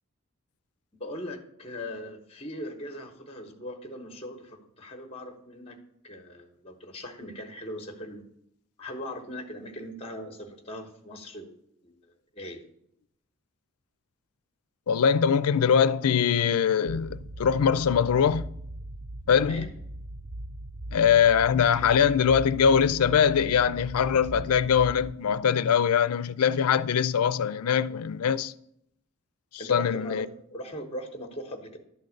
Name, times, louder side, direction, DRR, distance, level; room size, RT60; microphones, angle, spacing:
voice 1, 0.9-5.8 6.0-8.2 8.8-11.6 11.8-12.0 12.3-12.6 19.4-19.7 29.6-31.8, equal, 25° left, 1.1 m, -39 dB
voice 2, 14.9-18.5 19.3-19.7 20.9-28.5 29.7-30.3, left 7 dB, 85° left, 0.4 m, -22 dB
sound 1, 16.9-25.1, right 1 dB, 25° right, 0.4 m, -40 dB
12.0 x 3.9 x 6.4 m
head